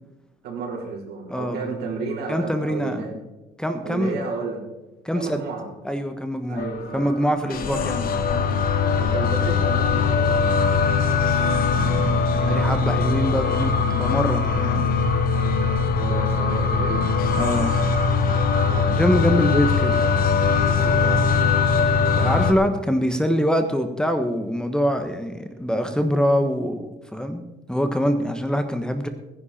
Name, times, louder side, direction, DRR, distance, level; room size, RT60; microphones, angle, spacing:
voice 1, 0.4-3.1 3.8-4.6 5.1-5.7 6.5-7.0 7.4-7.6 9.0-10.5 15.9-17.0 18.7-19.2 20.6-21.2, right 4 dB, 75° right, 0 dB, 4.5 m, -32 dB
voice 2, 1.3-1.7 2.3-3.0 3.6-4.2 5.0-5.4 5.8-6.7 6.9-8.1 11.8-14.9 17.4-17.8 18.9-20.0 22.2-29.1, equal, 5° left, 7 dB, 1.3 m, -24 dB
sound 1, 6.6-22.5, left 5 dB, 60° left, 1.9 m, -21 dB
20.5 x 10.5 x 4.4 m, 1.0 s
cardioid pair, 110°, 17 cm